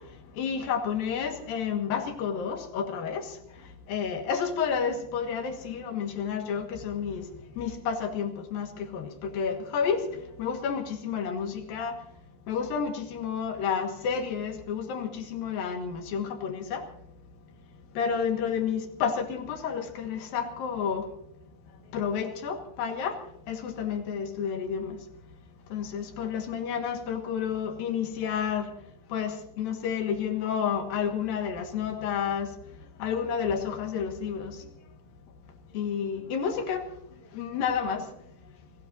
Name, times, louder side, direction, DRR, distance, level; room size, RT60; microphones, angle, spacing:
voice 1, 0.4-3.2 3.9-7.2 7.6-10.1 10.4-11.9 12.5-16.8 18.0-21.0 21.9-23.2 23.5-25.0 25.7-28.7 29.1-32.5 33.0-34.5 35.7-36.8 37.3-38.0, left 7 dB, 60° left, 5 dB, 2.9 m, -30 dB
29.5 x 18.0 x 2.7 m, 0.74 s
omnidirectional pair, 5.4 m